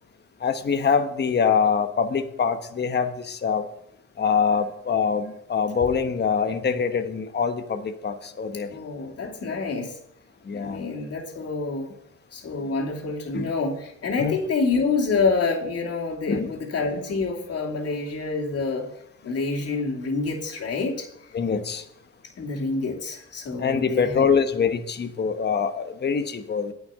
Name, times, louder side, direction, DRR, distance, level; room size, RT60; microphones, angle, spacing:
voice 1, 0.4-3.7 4.2-8.7 10.4-10.9 13.3-13.5 14.2-14.4 16.3-16.5 21.3-21.8 23.6-26.7, left 6 dB, 35° left, 1.1 m, -24 dB
voice 2, 8.7-10.0 10.5-11.9 12.3-18.9 19.2-21.1 22.4-24.3, left 4 dB, 55° left, 2.7 m, -27 dB
9.7 x 5.8 x 7.9 m
cardioid pair, 90°, 30 cm